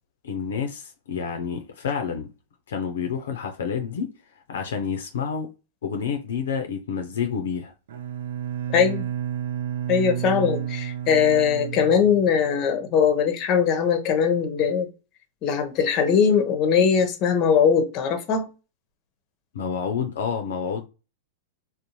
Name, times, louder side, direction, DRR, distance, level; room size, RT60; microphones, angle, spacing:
voice 1, 0.2-2.3 2.7-4.1 4.5-5.5 5.8-7.7 19.5-20.9, left 6 dB, 75° left, 0.5 m, -29 dB
Bowed string instrument, 7.9-12.6, right 10 dB, 75° right, 0.3 m, -31 dB
voice 2, 8.7-9.1 9.9-14.9 15.4-18.5, left 7 dB, 40° left, 0.7 m, -21 dB
2.6 x 2.0 x 2.9 m
hypercardioid pair, 110°, 0 cm